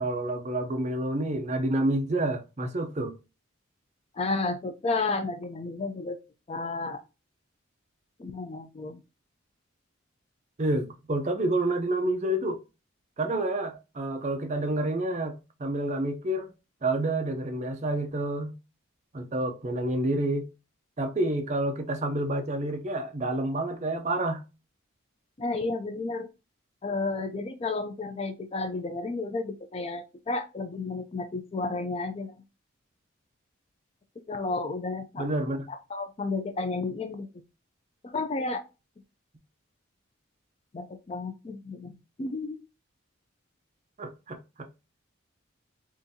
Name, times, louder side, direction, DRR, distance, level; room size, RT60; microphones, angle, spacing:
voice 1, 0.0-3.2 10.6-12.6 13.2-16.5 16.8-18.5 19.1-20.5 21.0-24.4 35.2-35.7 44.0-44.7, right 1 dB, 35° right, 0.5 m, -29 dB
voice 2, 4.1-6.2 6.5-7.0 8.2-9.0 25.4-26.3 26.8-32.3 34.3-35.3 35.7-37.3 38.0-38.6 40.7-42.6, left 3 dB, 30° left, 0.3 m, -32 dB
3.7 x 2.6 x 2.6 m
head